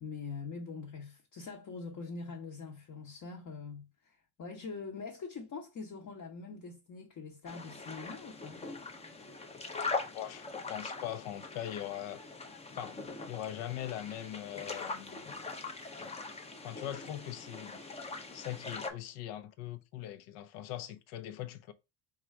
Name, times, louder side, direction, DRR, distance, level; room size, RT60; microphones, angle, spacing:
voice 1, 0.0-8.6, left 4 dB, 40° left, 0.8 m, -44 dB
sound 1, 7.5-18.9, left 3 dB, 15° left, 0.4 m, -42 dB
voice 2, 10.1-12.2 12.7-13.0 13.3-15.3 16.6-17.8 18.3-21.7, left 12 dB, 80° left, 0.7 m, -41 dB
3.7 x 2.4 x 4.3 m
cardioid pair, 115°, 48 cm